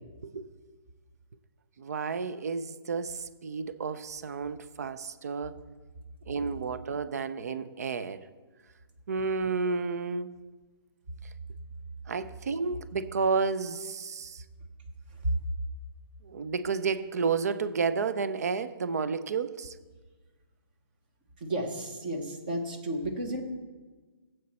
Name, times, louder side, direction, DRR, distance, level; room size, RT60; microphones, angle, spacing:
voice 1, 1.8-5.6 6.3-8.3 9.1-10.3 12.1-14.4 16.2-19.7, right 5 dB, 40° right, 14 dB, 0.5 m, -31 dB
voice 2, 21.4-23.4, right 1 dB, 20° right, 5 dB, 1.0 m, -32 dB
15.0 x 7.7 x 4.1 m, 1.3 s
hypercardioid pair, 175°, 14 cm